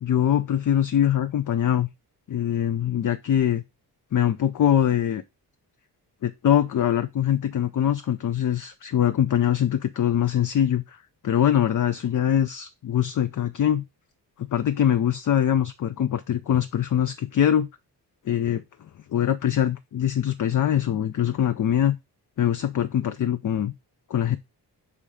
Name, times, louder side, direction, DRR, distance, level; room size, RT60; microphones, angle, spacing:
voice 1, 0.0-1.9 2.3-3.6 4.1-5.2 6.2-11.0 11.2-13.8 14.4-17.7 18.3-18.6 19.1-22.0 22.4-23.7 24.1-24.4, left 10 dB, 50° left, 0.5 m, -23 dB
7.0 x 3.3 x 4.9 m
wide cardioid pair, 135°, 41 cm